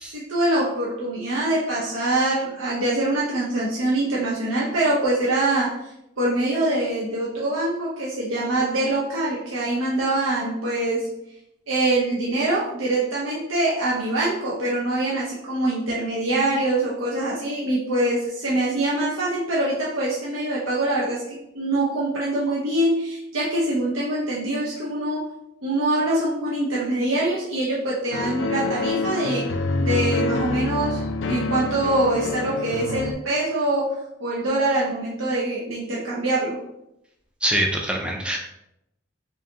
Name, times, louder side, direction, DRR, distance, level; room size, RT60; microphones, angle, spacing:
voice 1, 0.1-5.8 6.2-11.1 11.7-25.2 25.6-29.5 29.8-36.6, right 1 dB, 85° right, -6 dB, 0.8 m, -24 dB
sound 1, 28.1-33.1, left 3 dB, 65° left, 0.3 m, -26 dB
voice 2, 37.4-38.4, right 1 dB, 5° right, 0 dB, 0.4 m, -24 dB
4.7 x 2.6 x 2.8 m, 0.82 s
head